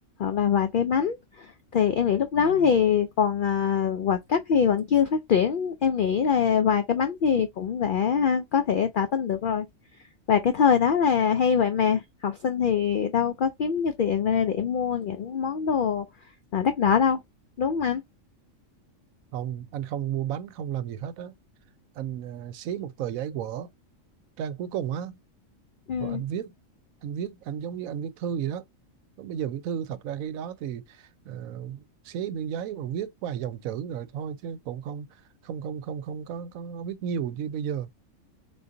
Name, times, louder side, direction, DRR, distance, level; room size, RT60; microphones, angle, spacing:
voice 1, 0.2-9.7 10.3-16.1 16.5-17.2 17.6-18.0 25.9-26.2, left 7 dB, 75° left, 0.4 m, -23 dB
voice 2, 2.4-2.7 19.3-21.3 22.0-23.7 24.4-25.2 26.0-26.5 27.0-28.7 29.2-37.9, right 9 dB, 90° right, 1.0 m, -33 dB
3.9 x 3.8 x 2.6 m
omnidirectional pair, 1.4 m